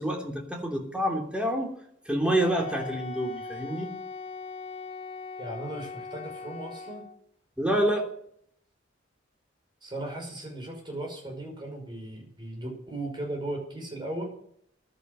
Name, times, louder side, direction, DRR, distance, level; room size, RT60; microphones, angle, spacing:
voice 1, 0.0-1.7 2.0-3.9 7.6-8.1, right 1 dB, 5° right, 0 dB, 3.2 m, -27 dB
Wind instrument woodwind instrument, 2.3-7.2, left 4 dB, 30° left, 0.8 m, -40 dB
voice 2, 5.4-7.0 9.8-14.2, right 1 dB, 25° right, 2 dB, 5.6 m, -37 dB
15.5 x 11.5 x 6.8 m, 0.67 s
head